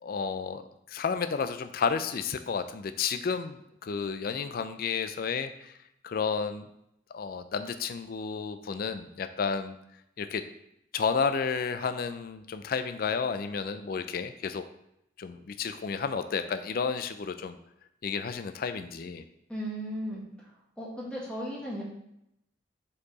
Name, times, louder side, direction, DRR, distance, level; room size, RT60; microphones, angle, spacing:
voice 1, 0.0-0.6 0.9-5.8 6.0-6.7 7.1-9.8 10.2-10.4 10.9-14.6 15.2-17.6 18.0-19.2, left 5 dB, 50° left, 9 dB, 0.4 m, -31 dB
voice 2, 19.5-20.2 20.8-21.8, equal, 5° left, -5 dB, 1.6 m, -35 dB
5.3 x 4.5 x 4.1 m, 0.81 s
head